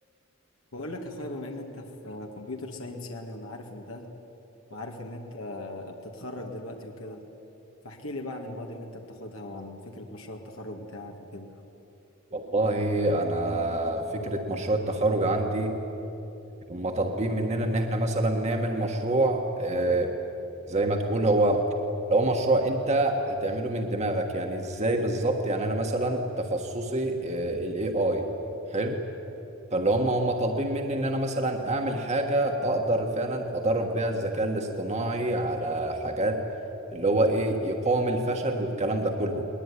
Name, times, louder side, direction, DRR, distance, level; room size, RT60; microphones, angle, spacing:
voice 1, 0.7-4.1 4.7-7.2 7.8-11.6, left 1 dB, 85° left, 2 dB, 2.1 m, -39 dB
voice 2, 12.3-15.7 16.7-20.1 20.7-21.6 22.1-28.3 28.7-29.0 29.7-36.4 36.9-39.5, right 1 dB, 35° right, 3 dB, 1.5 m, -26 dB
20.5 x 20.5 x 9.9 m, 3.0 s
head